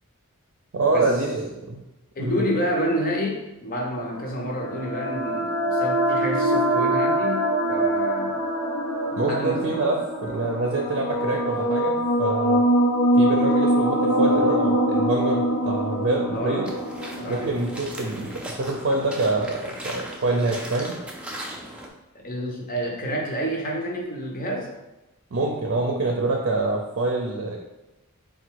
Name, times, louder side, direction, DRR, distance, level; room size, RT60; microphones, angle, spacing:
voice 1, 0.7-1.8 2.2-2.4 9.1-10.0 10.2-12.6 13.2-16.7 17.3-21.0 25.3-27.6, right 2 dB, 55° right, 0 dB, 0.5 m, -26 dB
voice 2, 2.1-8.4 9.3-9.8 16.3-16.7 17.2-17.5 22.1-24.7, equal, 40° left, 0 dB, 0.8 m, -29 dB
sound 1, 4.2-18.2, right 1 dB, 70° left, 0.9 m, -23 dB
sound 2, 16.6-21.9, right 1 dB, 5° right, 0.4 m, -38 dB
3.9 x 2.3 x 4.5 m, 1.0 s
head